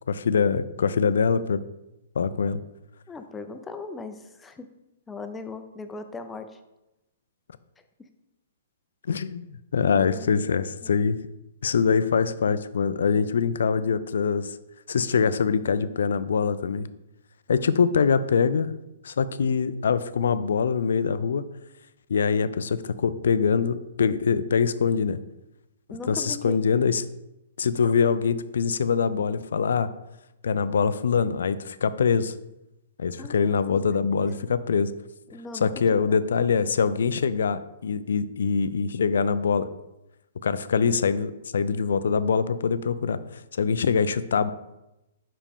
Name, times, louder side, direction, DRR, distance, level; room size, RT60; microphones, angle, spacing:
voice 1, 0.1-1.6 2.2-2.6 9.1-11.2 11.6-14.5 14.9-16.9 17.5-18.7 19.0-21.4 22.1-25.2 26.0-27.0 27.6-29.9 30.4-32.3 33.0-34.9 35.5-39.7 40.4-43.2 43.5-44.5, left 6 dB, 70° left, 14 dB, 0.4 m, -24 dB
voice 2, 3.1-4.7 5.1-6.6 9.9-11.0 25.9-26.6 33.2-33.9 35.3-36.3, left 3 dB, 10° left, 8 dB, 0.5 m, -39 dB
5.4 x 5.0 x 3.6 m, 0.94 s
hypercardioid pair, 125°, 0 cm